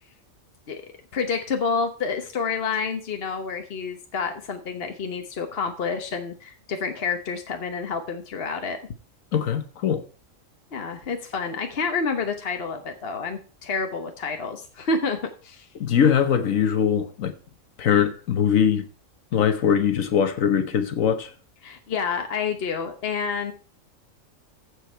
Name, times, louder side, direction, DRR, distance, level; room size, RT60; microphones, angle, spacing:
voice 1, 1.1-8.8 10.7-15.7 21.6-23.5, left 5 dB, 50° left, 1.2 m, -29 dB
voice 2, 9.3-10.0 15.8-17.3 17.8-18.8 19.3-21.3, left 8 dB, 90° left, 1.5 m, -21 dB
15.0 x 5.3 x 4.4 m
omnidirectional pair, 1.4 m